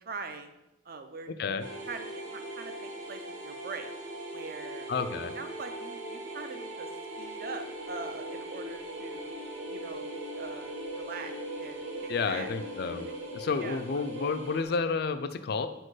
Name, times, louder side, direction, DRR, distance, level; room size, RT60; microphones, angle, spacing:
voice 1, 0.1-0.6 0.8-3.9 4.3-5.1 5.4-6.9 7.2-9.3 9.7-12.5 13.6-14.0, right 4 dB, 50° right, 8 dB, 0.5 m, -43 dB
voice 2, 1.3-1.6 4.9-5.3 12.1-13.1 13.3-15.7, left 4 dB, 55° left, 10 dB, 0.4 m, -31 dB
sound 1, 1.6-14.6, right 1 dB, 90° right, 1.2 m, -40 dB
4.6 x 4.4 x 4.8 m, 0.92 s
head